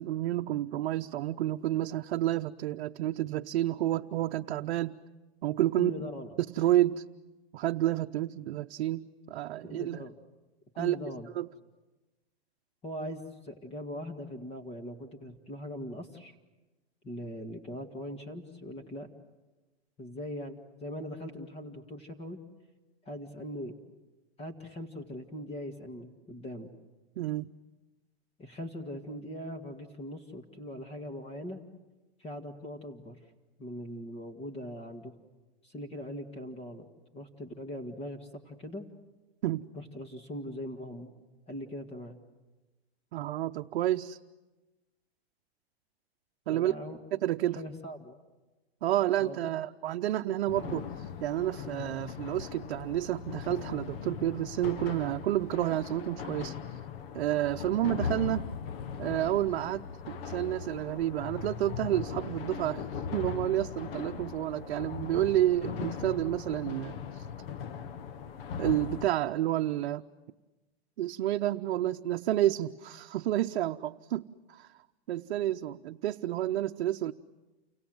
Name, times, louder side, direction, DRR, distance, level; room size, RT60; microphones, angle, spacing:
voice 1, 0.0-5.0 5.4-5.9 6.5-7.0 7.5-10.0 10.8-11.0 11.4-11.5 27.2-27.5 39.4-39.7 43.1-44.2 46.5-46.7 47.1-47.6 48.8-56.8 57.1-58.5 59.0-67.3 68.6-70.0 71.0-74.7 75.1-77.1, right 13 dB, 65° right, 5 dB, 0.8 m, -30 dB
voice 2, 5.8-6.4 9.6-10.1 10.7-11.3 12.8-16.3 17.0-19.1 20.0-22.4 23.0-23.8 24.4-26.7 28.4-31.6 32.2-33.2 33.6-35.2 35.6-36.9 37.1-38.9 39.7-41.2 41.5-42.2 46.5-47.0 47.6-48.2 48.9-49.5, equal, 20° left, 6 dB, 2.0 m, -41 dB
sound 1, 50.5-69.1, left 7 dB, 60° left, 1.5 m, -39 dB
29.5 x 25.5 x 7.9 m, 1.1 s
hypercardioid pair, 150°, 32 cm